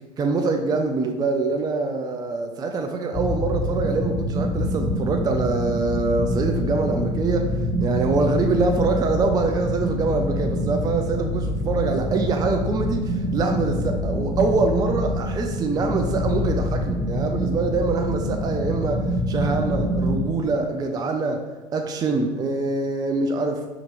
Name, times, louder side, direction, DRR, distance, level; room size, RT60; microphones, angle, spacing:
voice 1, 0.2-23.7, right 3 dB, 25° right, 4 dB, 0.4 m, -24 dB
sound 1, 3.1-20.3, equal, 10° left, 0.8 m, -26 dB
4.6 x 2.5 x 2.9 m, 1.2 s
hypercardioid pair, 75°, 17 cm